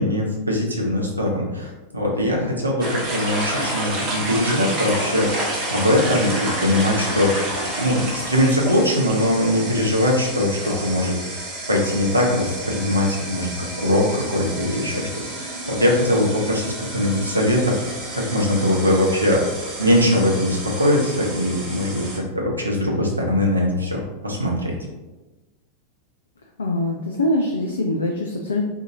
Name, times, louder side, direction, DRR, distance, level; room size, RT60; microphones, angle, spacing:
voice 1, 0.0-5.3 5.7-7.4 7.8-11.4 11.7-13.5 13.8-15.1 15.4-19.4 19.8-24.7, left 1 dB, 80° right, -1 dB, 0.8 m, -21 dB
sound 1, 2.8-22.2, right 1 dB, 35° right, 1.0 m, -30 dB
voice 2, 26.6-28.6, left 1 dB, 70° left, 1 dB, 0.4 m, -23 dB
2.8 x 2.7 x 3.7 m, 1.1 s
figure-of-eight pair, 90°, 0 cm